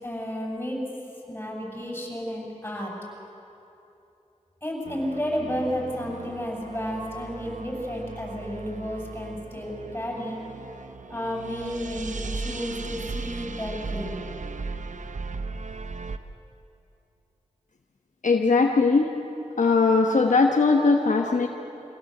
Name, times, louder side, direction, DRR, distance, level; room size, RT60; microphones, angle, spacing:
voice 1, 0.0-0.8 1.3-2.9 4.6-10.4 11.1-14.1, equal, 15° left, -2 dB, 7.2 m, -32 dB
sound 1, 4.9-16.2, right 4 dB, 80° right, 0.9 m, -37 dB
voice 2, 18.2-19.1 19.6-21.5, left 4 dB, 80° left, 1 dB, 1.2 m, -20 dB
24.5 x 16.5 x 7.9 m, 2.8 s
cardioid pair, 50°, 13 cm